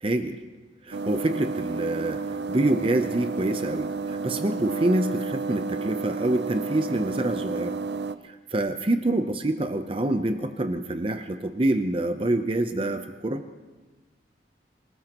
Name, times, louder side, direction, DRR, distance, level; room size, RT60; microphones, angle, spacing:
voice 1, 0.0-0.4 0.8-7.8 8.2-13.4, right 1 dB, 30° right, 8 dB, 0.7 m, -26 dB
sound 1, 0.9-8.2, right 4 dB, 70° right, 0.6 m, -31 dB
26.0 x 18.5 x 3.0 m, 1.3 s
head